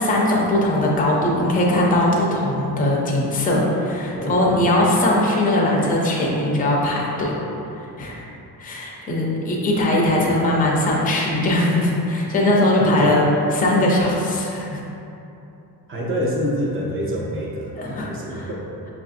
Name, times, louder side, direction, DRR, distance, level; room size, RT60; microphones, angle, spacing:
voice 1, 0.0-7.3 8.0-8.2 8.6-13.3 13.5-14.8 17.7-18.5, left 1 dB, 20° left, -3 dB, 0.4 m, -20 dB
voice 2, 4.1-4.6 12.8-13.2 15.9-18.6, equal, 35° right, -4 dB, 0.5 m, -26 dB
5.7 x 2.6 x 2.4 m, 2.9 s
wide cardioid pair, 175°, 39 cm